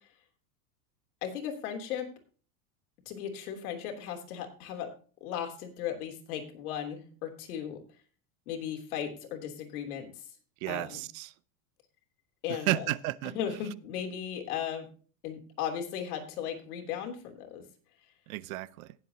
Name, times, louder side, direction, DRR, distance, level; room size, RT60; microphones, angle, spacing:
voice 1, 1.2-2.1 3.0-4.9 5.2-7.8 8.5-10.1 10.7-11.0 12.4-12.9 13.3-14.9 15.2-17.6, left 9 dB, 75° left, 3.3 m, -36 dB
voice 2, 10.6-11.3 12.5-13.3 18.3-18.9, right 17 dB, 65° right, 0.7 m, -33 dB
18.5 x 7.8 x 2.9 m
supercardioid pair, 155°, 45 cm